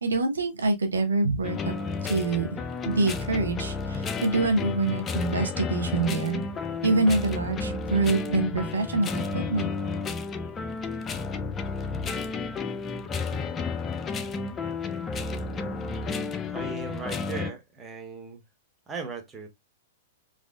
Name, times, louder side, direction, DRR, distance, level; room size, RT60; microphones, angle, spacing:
voice 1, 0.0-1.8 2.0-2.6 2.9-6.4 6.8-9.7, right 3 dB, 80° right, 0.7 m, -25 dB
sound 1, 1.4-17.5, left 4 dB, 25° left, 0.4 m, -32 dB
voice 2, 16.4-18.4 18.9-19.5, right 4 dB, 15° right, 0.8 m, -37 dB
3.2 x 2.4 x 2.3 m
hypercardioid pair, 110°, 0 cm